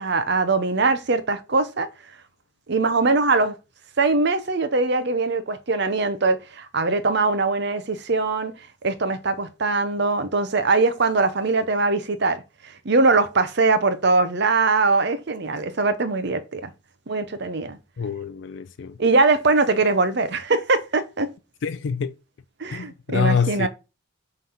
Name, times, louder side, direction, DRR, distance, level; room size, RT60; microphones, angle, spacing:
voice 1, 0.0-1.9 2.7-3.5 4.0-8.5 8.8-12.4 12.8-16.7 17.1-17.8 19.0-21.3 22.6-23.7, right 3 dB, 55° right, 0.8 m, -21 dB
voice 2, 18.0-19.0 21.6-22.1 22.7-23.7, left 6 dB, 60° left, 0.4 m, -26 dB
5.7 x 3.5 x 5.6 m
head